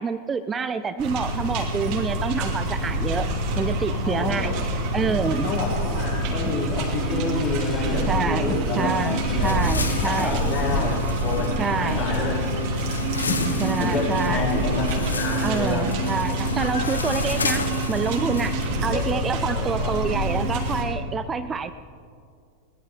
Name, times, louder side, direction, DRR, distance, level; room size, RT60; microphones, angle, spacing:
voice 1, 0.0-3.3 3.6-5.5 8.1-10.9 11.6-12.0 13.6-14.5 15.4-18.6 18.8-21.7, right 5 dB, 20° right, 12 dB, 0.4 m, -27 dB
sound 1, 1.0-20.8, right 1 dB, 45° right, 2.7 m, -26 dB
voice 2, 3.9-4.5 5.3-9.6 10.0-10.9 11.2-12.4 13.1-15.9 18.7-19.0 19.5-19.9, left 3 dB, 40° left, -5 dB, 5.5 m, -29 dB
sound 2, 4.9-5.9 6.4-10.3, equal, ahead, 2.2 m, -37 dB
sound 3, 8.7-18.7, left 4 dB, 75° left, 0.9 m, -32 dB
21.5 x 19.0 x 3.5 m, 2.3 s
figure-of-eight pair, 90°, 0 cm